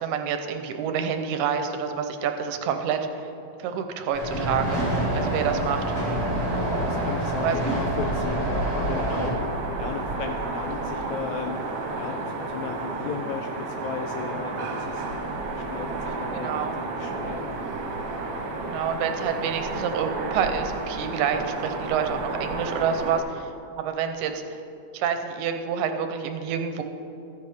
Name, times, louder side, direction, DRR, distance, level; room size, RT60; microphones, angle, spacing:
voice 1, 0.0-3.2 3.6-4.8 5.1-5.8 7.4-7.6 16.3-16.7 18.6-23.4 23.8-24.6 24.9-26.8, right 7 dB, 80° right, 7 dB, 2.0 m, -28 dB
sound 1, 4.1-9.3, equal, 50° left, 3.9 m, -28 dB
sound 2, 4.6-23.2, right 3 dB, 60° right, 1.4 m, -31 dB
voice 2, 5.1-5.5 6.7-9.4 9.8-11.6 12.0-12.2 12.5-15.0 15.5-17.4, left 7 dB, 80° left, 4 dB, 1.8 m, -35 dB
14.0 x 9.4 x 3.5 m, 2.7 s
omnidirectional pair, 3.6 m